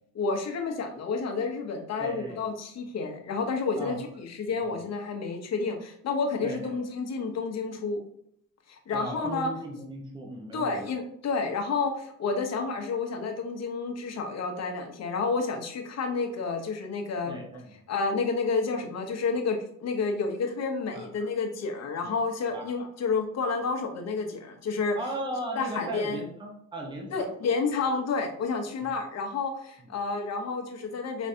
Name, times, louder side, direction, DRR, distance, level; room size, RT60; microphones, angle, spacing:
voice 1, 0.1-8.0 8.7-9.5 10.5-17.4 17.9-25.0 25.6-26.2 27.1-31.3, left 4 dB, 60° left, 3 dB, 1.0 m, -30 dB
voice 2, 2.0-2.4 3.8-4.0 4.6-4.9 6.4-6.7 8.9-10.9 17.2-17.7 20.9-21.1 22.0-22.1 22.5-22.7 25.0-27.3 28.8-28.9 29.8-29.9, right 1 dB, 15° right, 0 dB, 0.9 m, -37 dB
5.3 x 3.1 x 2.7 m, 0.69 s
cardioid pair, 90°, 30 cm